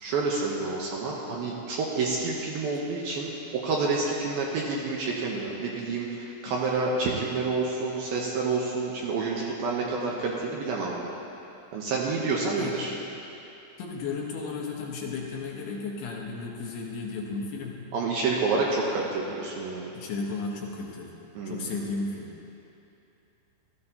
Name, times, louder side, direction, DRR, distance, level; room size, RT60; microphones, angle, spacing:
voice 1, 0.0-11.1 11.7-12.9 17.9-19.9 21.4-21.7, right 3 dB, 75° right, -3 dB, 2.4 m, -29 dB
voice 2, 13.8-17.9 19.9-21.2 21.4-22.3, left 4 dB, 75° left, -1 dB, 2.6 m, -34 dB
16.5 x 13.5 x 2.9 m, 2.8 s
omnidirectional pair, 5.0 m